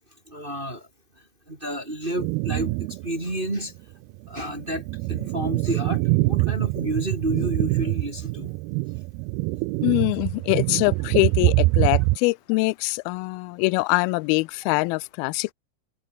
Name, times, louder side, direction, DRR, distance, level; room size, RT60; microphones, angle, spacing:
voice 1, 0.3-0.9 1.5-3.7 4.3-8.5, right 1 dB, 15° right, 2.3 m, -30 dB
sound 1, 2.2-3.1 3.5-3.6 4.3-12.2, right 23 dB, 90° right, 2.5 m, -24 dB
voice 2, 9.8-15.5, left 24 dB, 85° left, 2.4 m, -23 dB
omnidirectional pair, 4.4 m